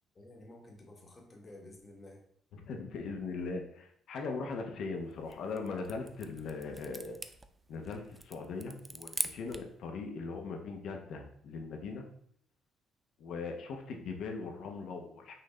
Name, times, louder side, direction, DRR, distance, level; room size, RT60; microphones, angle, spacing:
voice 1, 0.1-2.2, left 1 dB, 25° left, 0 dB, 1.1 m, -52 dB
voice 2, 2.5-7.2 7.7-12.0 13.2-15.3, left 4 dB, 70° left, 3 dB, 0.8 m, -40 dB
sound 1, 5.1-9.8, right 2 dB, 20° right, 0.3 m, -42 dB
5.6 x 2.6 x 3.2 m, 0.66 s
cardioid pair, 120°, 0 cm